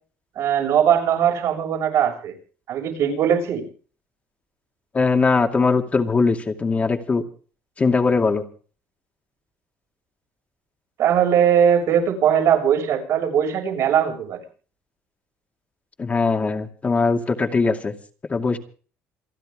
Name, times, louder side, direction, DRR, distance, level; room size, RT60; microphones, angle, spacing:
voice 1, 0.4-2.3 2.7-3.7 11.0-14.4, right 8 dB, 70° right, 3 dB, 7.2 m, -20 dB
voice 2, 4.9-7.2 7.8-8.4 16.0-17.9 18.3-18.6, left 4 dB, 25° left, 4 dB, 2.4 m, -20 dB
28.5 x 11.0 x 3.7 m, 0.41 s
cardioid pair, 100°, 5 cm